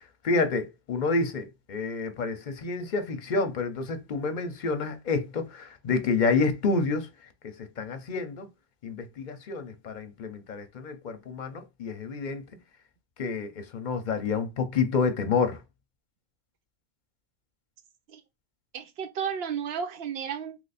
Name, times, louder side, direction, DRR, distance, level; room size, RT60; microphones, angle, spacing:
voice 1, 0.0-7.1 7.4-8.5 8.8-12.5 13.2-15.6, left 4 dB, 55° left, 0.7 m, -29 dB
voice 2, 18.7-20.6, right 7 dB, 75° right, 0.9 m, -33 dB
3.0 x 2.5 x 4.0 m
omnidirectional pair, 1.1 m